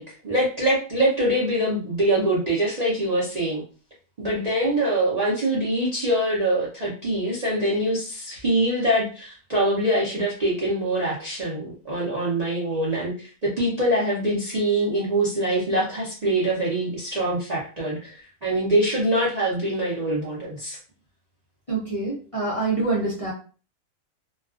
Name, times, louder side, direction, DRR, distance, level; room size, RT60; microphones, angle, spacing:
voice 1, 0.0-3.6 4.2-20.8, right 1 dB, 45° right, -7 dB, 0.5 m, -24 dB
voice 2, 21.7-23.3, right 3 dB, 35° left, -7 dB, 0.5 m, -26 dB
2.3 x 2.3 x 2.4 m, 0.38 s
omnidirectional pair, 1.4 m